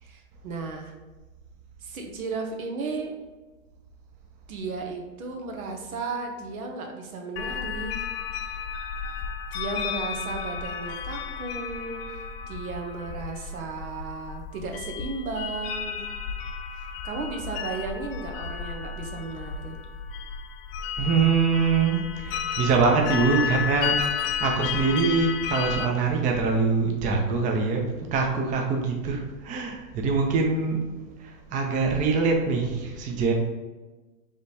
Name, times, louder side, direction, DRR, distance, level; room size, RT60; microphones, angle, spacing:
voice 1, 0.0-0.9 1.8-3.2 4.5-8.0 9.5-12.2 12.5-16.0 16.8-19.8, right 3 dB, 80° right, 2 dB, 1.1 m, -34 dB
sound 1, 7.4-25.9, left 6 dB, 45° left, 0.4 m, -32 dB
voice 2, 21.0-30.9 31.2-33.3, right 4 dB, 20° right, 2 dB, 0.5 m, -24 dB
5.0 x 3.3 x 2.8 m, 1.2 s
hypercardioid pair, 115°, 42 cm